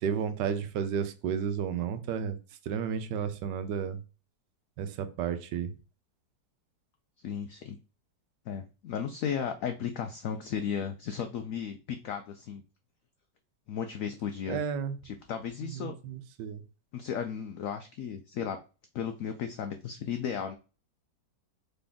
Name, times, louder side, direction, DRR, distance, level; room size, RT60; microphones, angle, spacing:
voice 1, 0.0-2.4 2.7-4.0 4.8-5.7 14.5-15.0 15.6-16.6, right 7 dB, 80° right, 1.3 m, -32 dB
voice 2, 7.2-7.8 8.5-12.6 13.7-14.6 15.0-15.9 16.9-18.6 18.9-20.6, left 7 dB, 75° left, 0.7 m, -35 dB
3.9 x 3.3 x 3.5 m
omnidirectional pair, 1.9 m